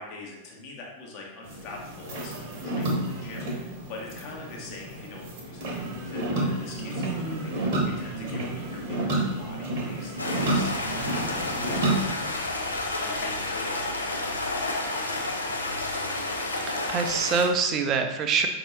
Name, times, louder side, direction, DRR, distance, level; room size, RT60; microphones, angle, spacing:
voice 1, 0.0-15.0, left 3 dB, 45° left, -1 dB, 1.1 m, -44 dB
sound 1, 1.4-12.0, right 1 dB, 50° right, 0.9 m, -30 dB
voice 2, 7.0-7.5 16.7-18.5, right 5 dB, 30° right, 5 dB, 0.5 m, -26 dB
Stream, 10.2-17.5, left 2 dB, 80° left, 0.5 m, -30 dB
5.2 x 2.7 x 3.1 m, 0.98 s
figure-of-eight pair, 90°, 0 cm